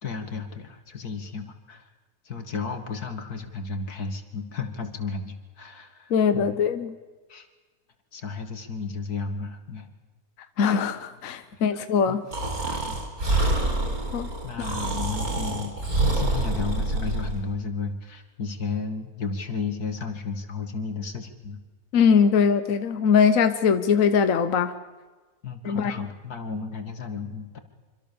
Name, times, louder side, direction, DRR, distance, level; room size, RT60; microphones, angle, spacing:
voice 1, 0.0-1.8 2.3-6.6 7.3-7.5 8.1-9.9 12.1-12.2 12.8-13.0 14.4-21.6 25.4-27.6, left 4 dB, 85° left, 7 dB, 2.7 m, -33 dB
voice 2, 6.1-6.9 10.6-12.2 12.7-12.8 14.1-14.3 21.9-24.7 25.6-26.0, left 6 dB, 65° left, 9 dB, 1.4 m, -21 dB
Breathing, 12.3-17.4, right 2 dB, 75° right, 4.9 m, -26 dB
26.0 x 25.5 x 7.0 m, 1.3 s
omnidirectional pair, 1.6 m